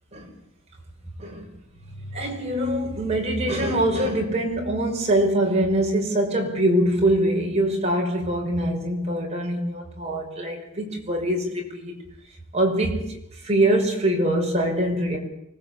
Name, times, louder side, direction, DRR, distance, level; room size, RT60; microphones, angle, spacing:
voice 1, 1.9-12.0 12.5-13.2 13.4-15.2, right 1 dB, 30° right, 0 dB, 5.7 m, -23 dB
24.5 x 18.5 x 8.5 m, 0.79 s
head